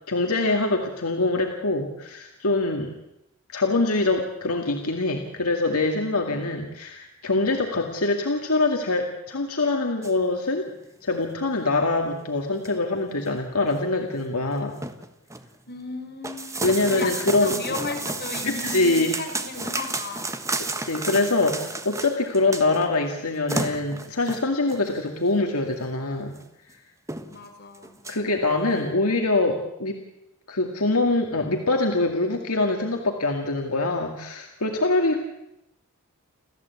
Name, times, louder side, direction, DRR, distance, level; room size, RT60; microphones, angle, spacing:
voice 1, 0.1-2.9 3.5-10.7 11.0-14.8 16.6-17.5 18.4-19.1 20.6-26.4 28.1-30.0 30.5-35.2, left 2 dB, 75° left, 2 dB, 2.2 m, -24 dB
sound 1, 10.0-10.1 10.7-10.9 11.2-11.3 11.8-11.9 12.4-12.9 13.3-13.4 13.7-13.8 14.1-14.3 14.5-15.5 16.2-22.9 23.2-23.3 23.5-24.9 25.7-25.8 26.3-26.4 26.7-26.8 27.1-27.5 27.7-28.2, right 3 dB, 15° right, 1.4 m, -32 dB
voice 2, 15.7-17.1 17.4-20.3 27.3-28.0, left 4 dB, 45° left, 3 dB, 4.8 m, -35 dB
29.0 x 14.5 x 8.4 m, 0.86 s
head